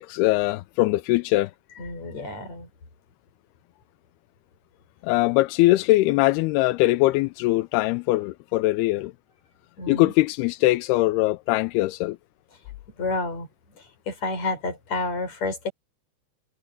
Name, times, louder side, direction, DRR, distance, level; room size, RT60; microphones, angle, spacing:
voice 1, 0.0-1.5 5.0-9.1 9.9-12.2, left 19 dB, 85° left, 2.4 m, -21 dB
voice 2, 1.8-2.7 9.8-10.1 13.0-13.5 14.1-15.7, left 3 dB, 40° left, 6.9 m, -29 dB
omnidirectional pair, 4.9 m